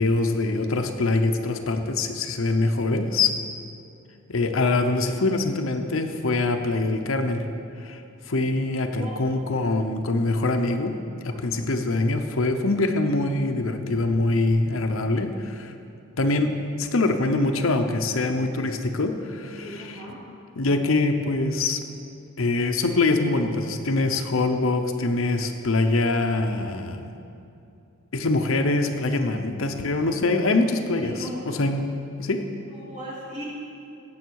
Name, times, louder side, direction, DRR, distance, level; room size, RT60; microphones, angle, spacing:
voice 1, 0.0-3.3 4.3-7.5 7.8-8.0 8.3-11.0 11.2-15.7 16.2-20.0 20.5-21.8 22.4-27.1 28.1-31.1 31.5-31.8 32.2-32.5, left 2 dB, 75° left, 6 dB, 0.8 m, -24 dB
voice 2, 9.0-9.4 11.3-11.6 19.4-20.2 29.5-30.3 31.0-31.4 32.7-33.4, right 1 dB, 35° right, -7 dB, 3.3 m, -39 dB
17.0 x 7.2 x 4.7 m, 2.7 s
head